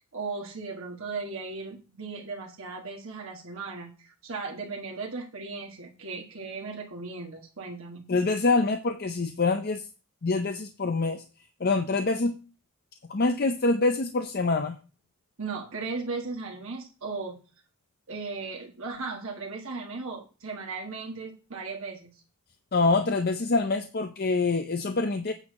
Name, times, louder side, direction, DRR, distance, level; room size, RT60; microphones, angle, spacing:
voice 1, 0.1-8.1 15.4-17.4 18.1-22.2, right 4 dB, 65° right, 0 dB, 1.5 m, -37 dB
voice 2, 8.1-9.8 10.2-11.2 11.6-12.3 13.1-14.7 22.7-25.3, left 3 dB, 45° left, 7 dB, 0.6 m, -25 dB
8.9 x 4.4 x 6.2 m, 0.33 s
head